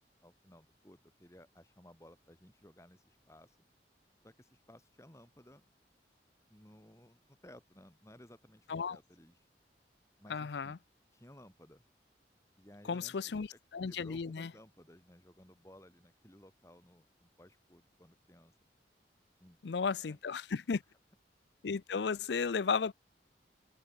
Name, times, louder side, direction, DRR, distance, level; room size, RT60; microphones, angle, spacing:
voice 1, 0.2-3.6 4.2-5.7 6.5-9.5 10.2-10.8 11.1-11.8 12.6-13.6 13.9-18.5 19.4-20.2, left 1 dB, 15° left, 4.9 m, -58 dB
voice 2, 10.3-10.8 12.9-13.5 13.7-14.5 19.6-20.8 21.6-22.9, left 5 dB, 80° left, 0.5 m, -34 dB
head